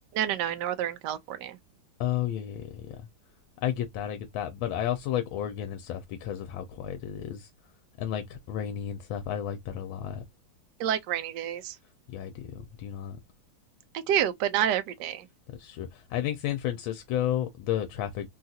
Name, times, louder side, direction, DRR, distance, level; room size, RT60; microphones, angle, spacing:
voice 1, 0.1-1.6 10.8-11.8 13.9-15.3, right 10 dB, 70° right, 1.1 m, -28 dB
voice 2, 2.0-3.0 3.6-7.5 8.0-10.2 12.1-13.2 15.6-18.3, left 11 dB, 90° left, 1.4 m, -32 dB
3.7 x 2.4 x 2.7 m
omnidirectional pair, 2.1 m